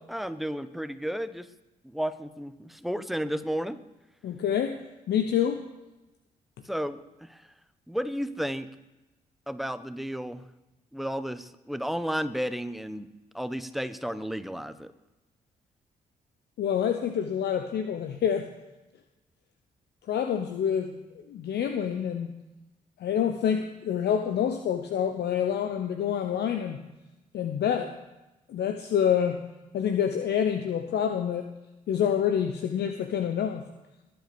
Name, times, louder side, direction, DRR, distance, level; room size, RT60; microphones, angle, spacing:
voice 1, 0.1-1.5 1.8-3.8 6.6-7.5 7.9-8.7 9.5-10.5 10.9-13.1 13.3-14.9, equal, ahead, 12 dB, 1.1 m, -32 dB
voice 2, 4.2-4.8 5.1-5.6 16.6-18.5 20.1-22.3 23.0-26.8 27.3-27.9 28.5-29.4 29.7-31.5 31.9-33.6, left 8 dB, 55° left, 7 dB, 1.0 m, -27 dB
21.0 x 7.8 x 7.0 m, 1.0 s
figure-of-eight pair, 40°, 20 cm